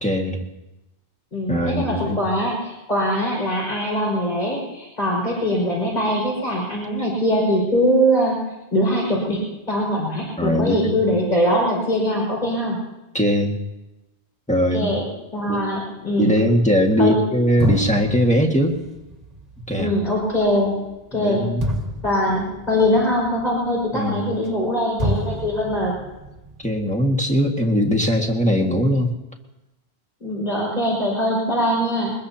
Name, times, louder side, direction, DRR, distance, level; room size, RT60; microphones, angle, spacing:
voice 1, 0.0-0.5 1.5-2.2 10.4-11.0 13.1-13.6 14.5-14.9 15.5-15.7 16.2-18.8 19.7-19.9 21.1-21.6 23.9-24.3 26.6-29.1, equal, 5° left, 1 dB, 1.9 m, -20 dB
voice 2, 1.3-8.4 8.7-9.4 9.7-12.8 14.7-15.0 15.3-16.4 17.0-17.1 19.8-20.7 21.1-21.6 22.0-25.9 30.2-32.1, equal, 40° left, -3 dB, 5.8 m, -22 dB
sound 1, 17.6-24.7 25.0-27.0, right 1 dB, 40° right, 1.7 m, -30 dB
23.0 x 21.0 x 2.9 m, 0.99 s
omnidirectional pair, 1.1 m